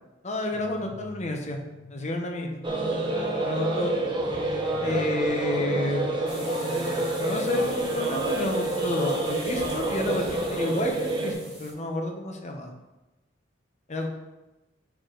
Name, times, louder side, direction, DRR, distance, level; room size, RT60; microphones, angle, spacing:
voice 1, 0.2-1.6 1.9-2.6 3.4-3.9 4.8-6.2 7.2-12.7 13.9-14.1, left 1 dB, 35° left, 3 dB, 0.8 m, -30 dB
sound 1, 0.5-8.1, equal, 80° left, 0.9 m, -44 dB
sound 2, 2.6-11.3, right 2 dB, 25° right, 0.9 m, -28 dB
sound 3, 6.3-11.7, right 1 dB, 5° right, 2.1 m, -44 dB
6.6 x 4.7 x 3.9 m, 1.0 s
head